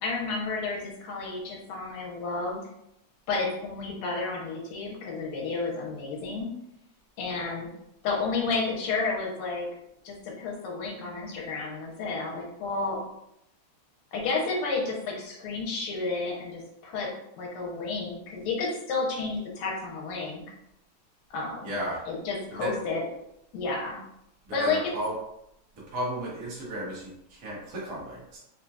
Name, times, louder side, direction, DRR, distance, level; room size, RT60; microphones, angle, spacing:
voice 1, 0.0-2.6 3.3-6.5 7.2-7.7 8.0-9.7 10.0-13.0 14.1-17.1 17.4-20.4 21.3-21.8 22.1-23.0 23.5-24.0 24.5-24.9, left 3 dB, 75° left, -2 dB, 2.0 m, -31 dB
voice 2, 21.6-22.0 22.6-22.7 24.4-25.1 25.9-28.4, equal, 80° right, -6 dB, 0.7 m, -34 dB
4.6 x 2.7 x 2.3 m, 0.80 s
omnidirectional pair, 3.3 m